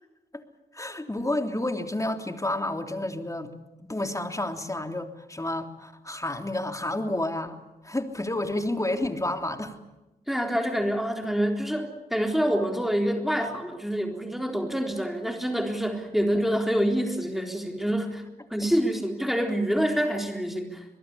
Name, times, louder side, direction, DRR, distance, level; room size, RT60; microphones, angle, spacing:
voice 1, 0.7-3.5 3.9-7.6 7.8-9.8 18.6-18.7, left 1 dB, 20° left, 5 dB, 3.2 m, -30 dB
voice 2, 10.3-18.2 18.5-20.8, equal, ahead, 3 dB, 3.8 m, -26 dB
24.0 x 21.0 x 8.5 m, 1.0 s
cardioid pair, 50°, 17 cm